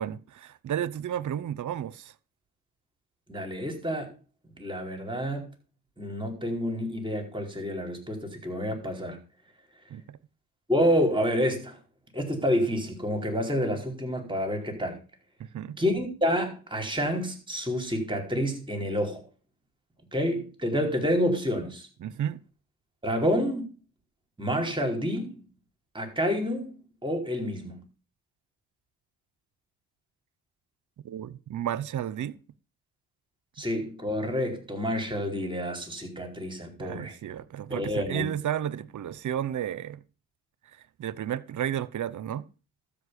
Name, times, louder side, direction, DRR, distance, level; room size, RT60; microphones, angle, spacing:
voice 1, 0.0-2.1 9.9-10.2 15.4-15.8 22.0-22.4 31.0-32.4 36.8-40.0 41.0-42.5, right 10 dB, 55° right, 0.9 m, -32 dB
voice 2, 3.3-4.1 4.6-5.5 6.0-9.2 10.7-11.8 12.1-15.0 15.8-19.2 20.1-21.9 23.0-23.7 24.4-25.4 25.9-27.8 33.6-37.1 37.7-38.3, equal, 15° right, 4.5 m, -28 dB
13.0 x 5.4 x 8.4 m
cardioid pair, 90°, 35 cm